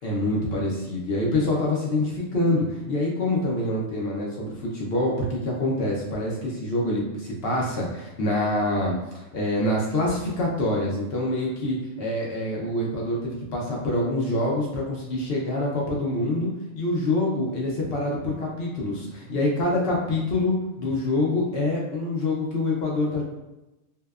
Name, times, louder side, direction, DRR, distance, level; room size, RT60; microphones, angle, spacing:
voice 1, 0.0-16.5 16.8-23.2, left 1 dB, 60° left, -3 dB, 0.7 m, -26 dB
2.7 x 2.1 x 2.3 m, 0.98 s
omnidirectional pair, 1.3 m